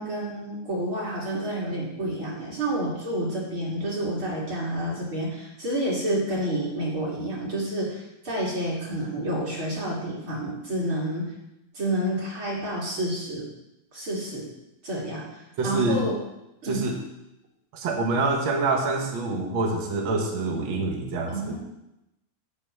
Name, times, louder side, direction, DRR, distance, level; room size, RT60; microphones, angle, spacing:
voice 1, 0.0-11.2 11.7-13.4 13.9-14.5 14.8-16.2 16.6-16.8 21.3-21.6, right 1 dB, 35° right, -4 dB, 2.7 m, -29 dB
voice 2, 15.6-16.0 16.7-17.0 17.7-21.6, right 3 dB, 90° right, 2 dB, 1.1 m, -26 dB
10.5 x 4.9 x 7.7 m, 0.88 s
omnidirectional pair, 4.4 m